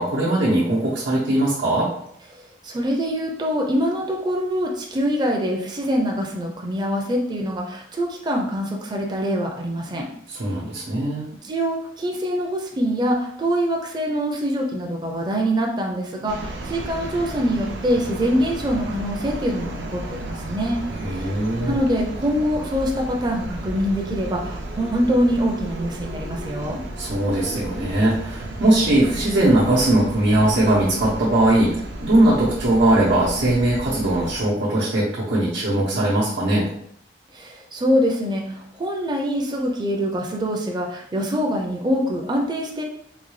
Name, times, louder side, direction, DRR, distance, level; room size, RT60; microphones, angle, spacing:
voice 1, 0.0-1.9 10.3-11.2 21.0-21.8 27.0-36.6, right 1 dB, 90° right, -7 dB, 0.9 m, -20 dB
voice 2, 2.3-10.1 11.4-20.8 21.1-21.3 21.7-26.8 37.3-42.8, equal, 25° right, 0 dB, 0.4 m, -24 dB
sound 1, 16.3-34.4, right 1 dB, 75° right, 0.5 m, -33 dB
3.9 x 2.3 x 3.1 m, 0.71 s
head